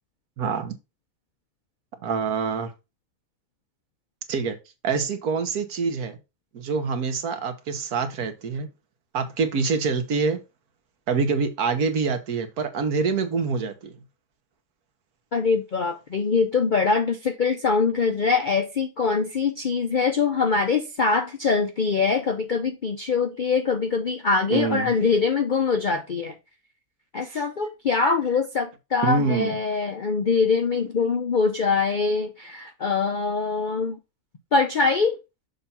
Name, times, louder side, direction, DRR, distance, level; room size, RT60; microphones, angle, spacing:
voice 1, 0.4-0.8 2.0-2.7 4.3-4.6 4.8-6.2 6.5-8.7 9.1-10.4 11.1-13.9 24.5-24.9 29.0-29.6, right 5 dB, 75° right, 1.5 m, -25 dB
voice 2, 15.3-26.3 27.1-34.0 34.5-35.2, left 4 dB, 60° left, 0.5 m, -23 dB
6.7 x 2.7 x 5.6 m
omnidirectional pair, 1.6 m